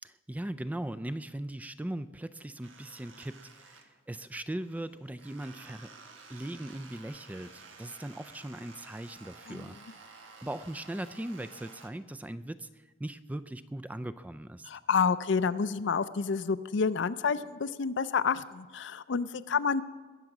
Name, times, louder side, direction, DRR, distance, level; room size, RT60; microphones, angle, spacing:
voice 1, 0.0-5.9 6.3-14.7, right 1 dB, 10° right, 13 dB, 0.3 m, -39 dB
sound 1, 2.6-4.2 4.6-11.9, right 4 dB, 80° right, 1.5 m, -53 dB
voice 2, 14.7-19.8, left 5 dB, 65° left, 14 dB, 0.5 m, -29 dB
21.0 x 7.5 x 6.0 m, 1.4 s
head